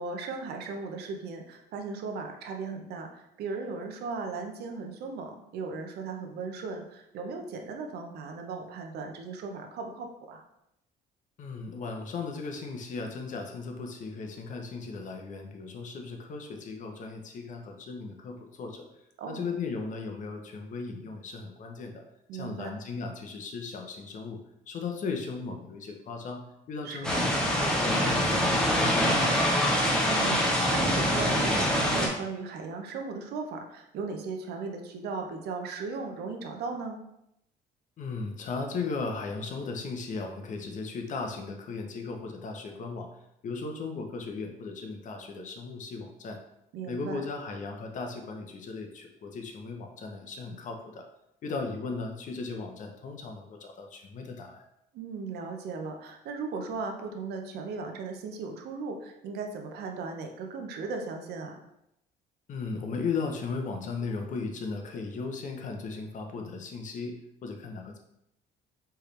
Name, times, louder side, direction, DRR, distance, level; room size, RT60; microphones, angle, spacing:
voice 1, 0.0-10.4 19.2-19.5 22.3-22.7 26.8-27.2 30.1-37.0 46.7-47.2 54.9-61.6, right 4 dB, 75° right, 3 dB, 0.7 m, -37 dB
voice 2, 11.4-18.9 19.3-22.0 22.3-24.4 24.7-29.4 38.0-43.1 43.4-46.4 46.9-51.1 51.4-54.6 62.5-67.2 67.4-68.0, left 4 dB, 50° left, 3 dB, 0.8 m, -36 dB
sound 1, 27.0-32.1, equal, 5° left, 1.0 m, -25 dB
4.6 x 3.3 x 3.2 m, 0.82 s
cardioid pair, 110°, 17 cm